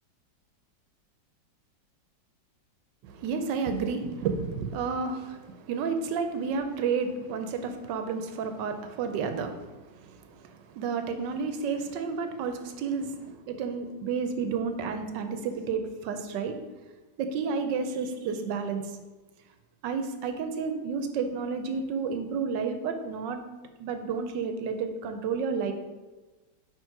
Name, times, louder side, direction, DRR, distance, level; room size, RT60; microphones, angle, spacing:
voice 1, 3.0-16.6 17.2-18.9 19.8-23.4 23.8-25.7, right 5 dB, 80° right, 7 dB, 1.2 m, -31 dB
5.0 x 4.5 x 4.5 m, 1.2 s
omnidirectional pair, 2.0 m